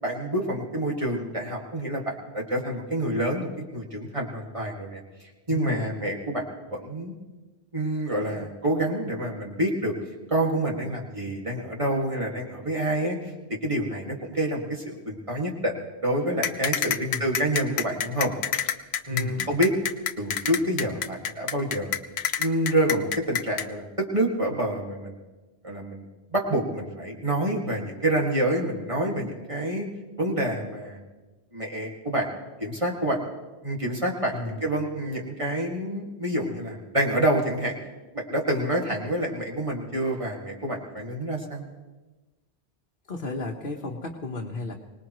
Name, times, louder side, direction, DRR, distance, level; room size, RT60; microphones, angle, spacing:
voice 1, 0.0-5.0 5.5-6.4 6.7-7.2 7.7-9.9 10.3-13.2 13.5-15.7 16.0-18.3 19.1-19.7 20.2-22.0 22.4-25.2 25.6-26.1 26.3-29.9 30.2-31.0 31.5-32.3 32.6-33.3 33.6-37.8 38.1-41.6, right 1 dB, 30° right, -1 dB, 2.1 m, -27 dB
voice 2, 5.5-6.0 16.9-17.3 19.1-19.5 34.3-34.6 43.1-44.7, left 3 dB, 60° left, -1 dB, 1.3 m, -34 dB
sound 1, 16.4-23.7, left 8 dB, 85° left, 0.9 m, -27 dB
24.5 x 19.5 x 3.1 m, 1.2 s
omnidirectional pair, 1.1 m